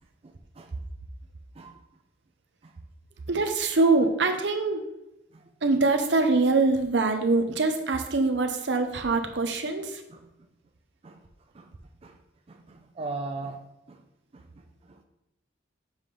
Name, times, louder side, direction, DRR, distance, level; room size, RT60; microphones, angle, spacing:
voice 1, 0.2-0.7 1.5-1.8 2.6-2.7 5.3-5.5 9.8-10.3 11.0-11.2 11.5-11.7 12.0-12.2 12.5-13.6 13.9-14.0 14.3-15.0, right 3 dB, 30° right, 4 dB, 0.4 m, -40 dB
voice 2, 3.3-4.8 5.6-10.0, right 3 dB, 65° right, 6 dB, 0.8 m, -24 dB
7.2 x 3.3 x 5.7 m, 0.88 s
head